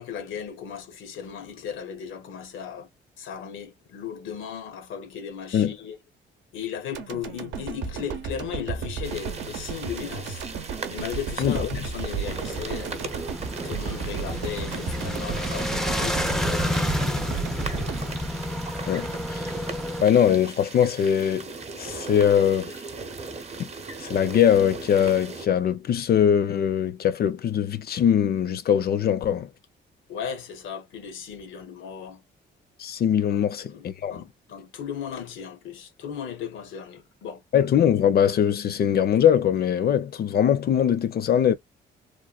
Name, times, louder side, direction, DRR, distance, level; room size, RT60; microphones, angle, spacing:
voice 1, 0.0-2.9 3.2-6.0 6.5-10.6 10.9-12.9 13.6-17.5 30.1-32.2 33.3-37.4, left 8 dB, 80° left, 0.7 m, -36 dB
sound 1, 6.9-19.2 19.5-19.6, right 6 dB, 75° right, 0.7 m, -34 dB
sound 2, 9.0-25.5, right 4 dB, 35° right, 0.6 m, -38 dB
voice 2, 11.4-11.9 18.9-19.5 20.0-22.7 23.6-23.7 24.0-29.5 32.8-34.2 37.5-41.5, left 9 dB, 50° left, 0.5 m, -22 dB
sound 3, 12.2-20.0, left 1 dB, ahead, 0.4 m, -30 dB
3.1 x 2.1 x 2.3 m
cardioid pair, 90°, 20 cm